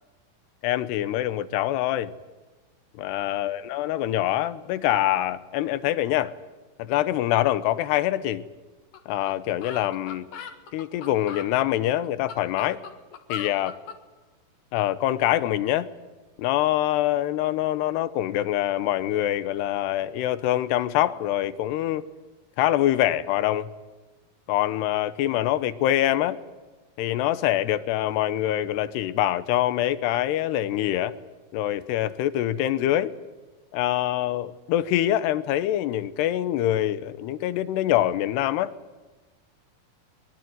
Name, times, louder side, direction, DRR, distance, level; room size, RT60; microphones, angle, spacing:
voice 1, 0.6-2.1 3.0-6.3 6.8-8.5 9.1-10.3 10.7-12.8 13.3-13.8 14.7-15.9 16.4-22.1 22.6-23.7 24.5-26.4 27.0-31.1 31.5-33.1 33.7-38.7, left 13 dB, 90° left, 3.1 m, -25 dB
sound 1, 8.9-9.0 9.3-9.4 9.6-11.5 12.1-14.0, left 6 dB, 65° left, 3.5 m, -39 dB
23.0 x 22.0 x 9.5 m
omnidirectional pair, 4.6 m